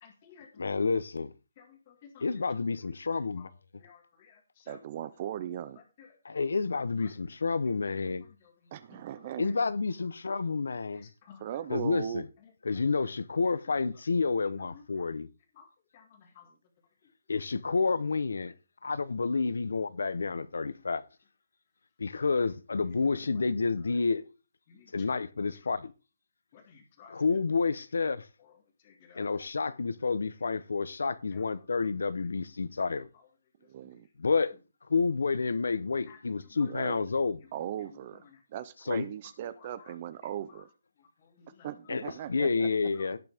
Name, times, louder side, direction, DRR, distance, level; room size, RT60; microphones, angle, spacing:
voice 1, 0.0-0.8 1.6-2.3 3.4-3.5 3.8-4.8 6.0-6.1 7.0-7.1 8.9-9.0 10.9-11.4 14.7-15.1 15.5-15.7 15.9-16.5 24.7-24.9 26.5-27.1 28.8-29.3 31.3-31.4 36.1-36.2 41.2-41.7, left 7 dB, 20° left, 2.0 m, -55 dB
voice 2, 0.6-1.3 2.2-3.5 6.2-8.2 9.4-11.1 11.7-12.2 12.7-15.3 17.3-18.5 18.8-21.0 22.0-24.2 24.9-25.9 27.1-28.2 29.1-33.1 34.2-34.5 34.9-37.4 38.9-39.1 41.9-42.0 42.3-43.2, left 4 dB, 80° left, 0.9 m, -29 dB
voice 3, 4.7-5.8 8.7-9.5 11.4-12.2 22.9-23.4 33.6-34.1 36.6-37.0 37.5-38.2 38.5-40.7 41.6-42.7, right 10 dB, 25° right, 0.5 m, -38 dB
17.5 x 6.1 x 3.5 m
hypercardioid pair, 180°, 0 cm